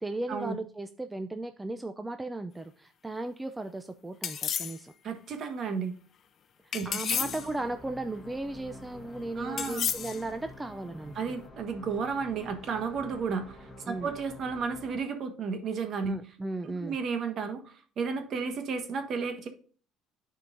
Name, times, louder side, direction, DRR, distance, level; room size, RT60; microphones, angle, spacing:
voice 1, 0.0-4.9 6.6-11.4 13.9-14.1 16.1-17.0, right 2 dB, 10° right, 8 dB, 0.5 m, -36 dB
sound 1, 4.2-4.8 6.7-7.5 9.6-10.2, left 8 dB, 45° left, 0.6 m, -31 dB
voice 2, 5.0-6.0 6.7-7.5 9.4-9.9 11.1-16.1 16.6-19.5, right 5 dB, 50° right, 7 dB, 1.3 m, -33 dB
sound 2, 7.1-15.0, left 1 dB, 10° left, 1.2 m, -48 dB
12.0 x 4.6 x 2.6 m, 0.43 s
cardioid pair, 120°, 0 cm